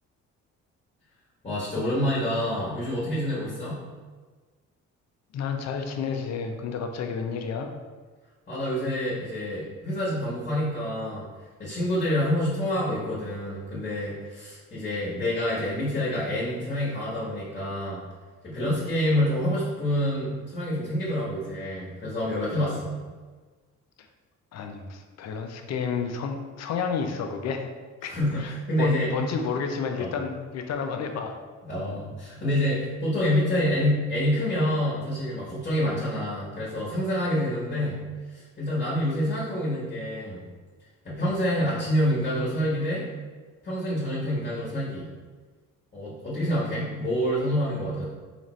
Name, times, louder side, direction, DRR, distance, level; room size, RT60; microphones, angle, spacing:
voice 1, 1.4-3.8 8.5-11.2 11.6-18.0 18.4-23.0 28.0-29.1 29.9-30.1 31.6-38.0 38.3-40.4 41.0-43.0 43.6-45.1 45.9-48.0, equal, 25° left, -8 dB, 1.4 m, -27 dB
voice 2, 5.3-7.7 24.0-24.1 24.5-27.7 28.0-31.4, left 5 dB, 60° left, 5 dB, 0.5 m, -31 dB
4.0 x 2.5 x 3.1 m, 1.4 s
cardioid pair, 90°, 30 cm